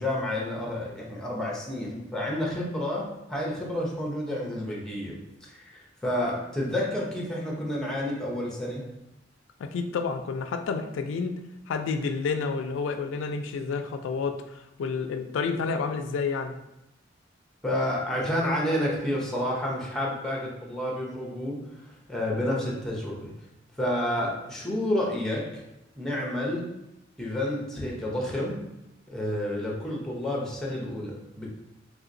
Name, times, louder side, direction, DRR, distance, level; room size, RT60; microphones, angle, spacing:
voice 1, 0.0-5.7 6.0-8.8 17.6-23.3 23.8-25.6 25.9-26.7 27.2-28.6 29.1-31.5, left 1 dB, 5° left, -3 dB, 0.6 m, -30 dB
voice 2, 9.6-11.4 11.7-16.5, left 5 dB, 75° left, 8 dB, 0.3 m, -30 dB
3.2 x 2.8 x 2.5 m, 0.89 s
head